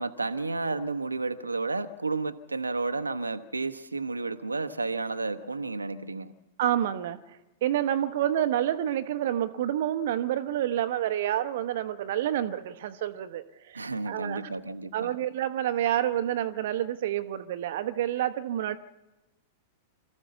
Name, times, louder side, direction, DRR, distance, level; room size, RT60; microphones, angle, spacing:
voice 1, 0.0-6.3 13.7-15.1, right 3 dB, 80° right, 8 dB, 1.0 m, -32 dB
voice 2, 6.6-14.5 14.9-18.8, right 11 dB, 55° right, 10 dB, 0.9 m, -28 dB
26.5 x 14.0 x 7.0 m, 1.0 s
figure-of-eight pair, 95°, 0 cm